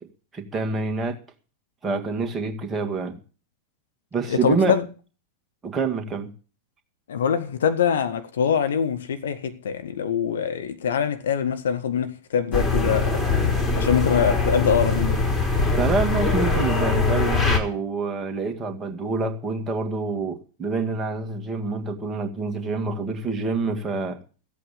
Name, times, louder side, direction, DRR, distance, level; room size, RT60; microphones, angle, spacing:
voice 1, 0.3-1.2 1.8-3.2 4.1-4.8 5.6-6.3 15.8-24.2, right 4 dB, 20° right, 2.1 m, -27 dB
voice 2, 4.3-4.8 7.1-13.4 13.8-15.3, left 7 dB, 65° left, 1.1 m, -24 dB
sound 1, 12.5-17.6, left 3 dB, 15° left, 3.5 m, -22 dB
15.0 x 8.4 x 7.0 m
figure-of-eight pair, 90°, 0 cm